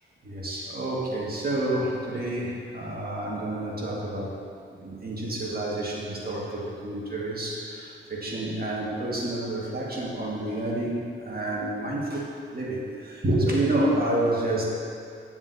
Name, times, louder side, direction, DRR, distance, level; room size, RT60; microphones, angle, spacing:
voice 1, 0.2-4.3 4.8-14.6, right 1 dB, 50° right, -4 dB, 1.6 m, -29 dB
9.8 x 7.1 x 2.7 m, 2.3 s
cardioid pair, 70°, 21 cm